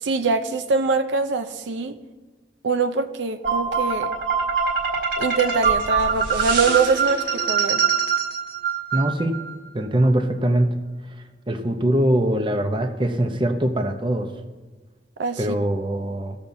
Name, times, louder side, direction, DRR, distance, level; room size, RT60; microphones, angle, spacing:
voice 1, 0.0-2.0 2.6-4.1 5.2-7.8 15.2-15.6, right 4 dB, 80° right, 9 dB, 0.5 m, -23 dB
sound 1, 3.4-9.5, right 6 dB, 55° right, 1.7 m, -23 dB
voice 2, 8.9-9.4 9.7-10.7 11.5-14.3 15.4-16.4, right 1 dB, 25° right, 6 dB, 0.7 m, -22 dB
18.5 x 7.0 x 2.7 m, 1.3 s
head